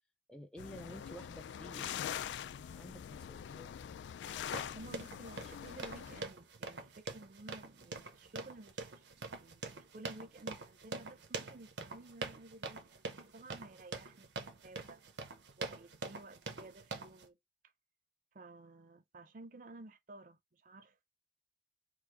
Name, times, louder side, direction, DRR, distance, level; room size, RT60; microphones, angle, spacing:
voice 1, 0.3-3.7, equal, 5° left, 0.4 m, -52 dB
sound 1, 0.6-6.2, left 9 dB, 85° left, 0.3 m, -43 dB
sound 2, 4.3-17.3, right 3 dB, 85° right, 0.8 m, -45 dB
voice 2, 4.7-13.0 13.3-15.0 15.6-17.4 18.3-21.0, right 2 dB, 45° right, 0.5 m, -54 dB
4.7 x 2.0 x 4.7 m
head